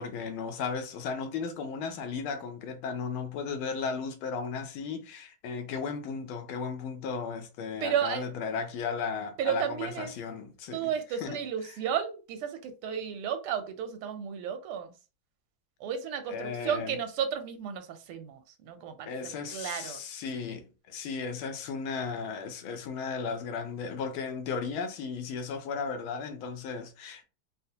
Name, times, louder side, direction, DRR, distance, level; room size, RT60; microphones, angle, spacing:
voice 1, 0.0-10.9 11.2-11.4 16.3-17.0 19.1-27.2, left 5 dB, 80° left, 1.5 m, -35 dB
voice 2, 7.8-8.2 9.4-10.1 10.7-14.9 15.8-20.0, right 8 dB, 90° right, 1.6 m, -33 dB
4.1 x 2.0 x 2.8 m
omnidirectional pair, 2.3 m